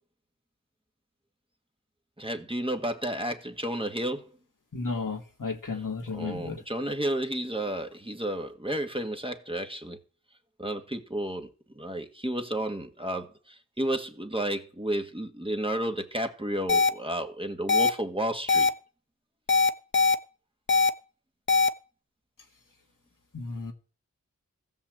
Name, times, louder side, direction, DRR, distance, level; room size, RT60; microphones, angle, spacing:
voice 1, 2.2-4.3 6.1-10.0 10.6-11.5 11.7-18.7, right 1 dB, 15° right, 1.5 m, -32 dB
voice 2, 4.7-6.6 23.3-23.7, left 4 dB, 75° left, 1.9 m, -33 dB
sound 1, 16.7-16.9 17.7-17.9 18.5-18.7 19.5-20.1 20.7-20.9 21.5-21.7, left 4 dB, 35° left, 0.8 m, -21 dB
15.0 x 5.7 x 7.5 m
wide cardioid pair, 55°, 32 cm